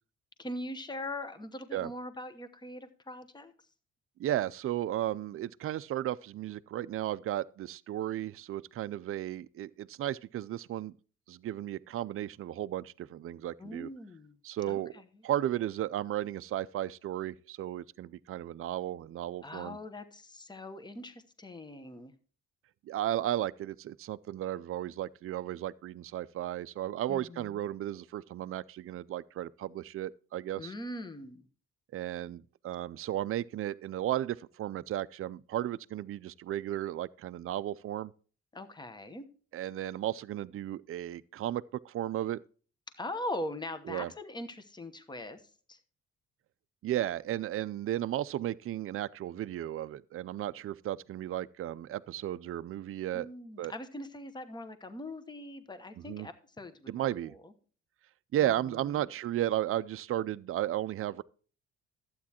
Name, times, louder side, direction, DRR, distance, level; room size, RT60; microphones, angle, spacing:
voice 1, 0.4-3.5 13.6-14.4 14.6-15.2 19.4-22.1 27.1-27.6 30.6-31.5 38.5-39.3 42.9-45.8 53.1-56.9 57.2-57.5 58.4-59.1, left 1 dB, 15° left, 1.0 m, -41 dB
voice 2, 4.2-10.9 11.3-13.9 14.4-14.9 15.2-19.8 22.9-30.7 31.9-38.1 39.5-42.4 43.9-44.1 46.8-53.3 53.6-53.7 56.1-56.3 56.9-57.3 58.3-61.2, right 12 dB, 45° right, 0.4 m, -34 dB
11.5 x 8.4 x 2.9 m
cardioid pair, 90°, 30 cm